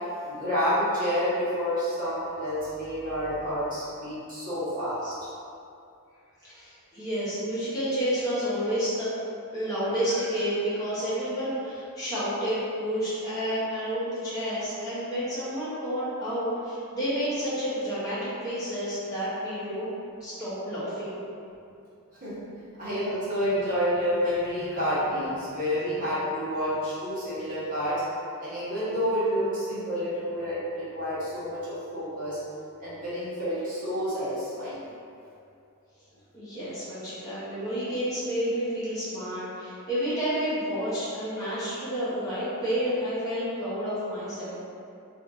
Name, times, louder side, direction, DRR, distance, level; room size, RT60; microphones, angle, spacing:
voice 1, 0.2-5.1 22.2-22.3 22.8-28.0 28.4-32.4 32.8-34.8, equal, 40° right, -12 dB, 1.2 m, -29 dB
voice 2, 6.4-9.1 9.5-19.9 20.2-21.2 36.3-44.5, equal, 15° left, -13 dB, 0.9 m, -30 dB
2.6 x 2.6 x 3.5 m, 2.5 s
head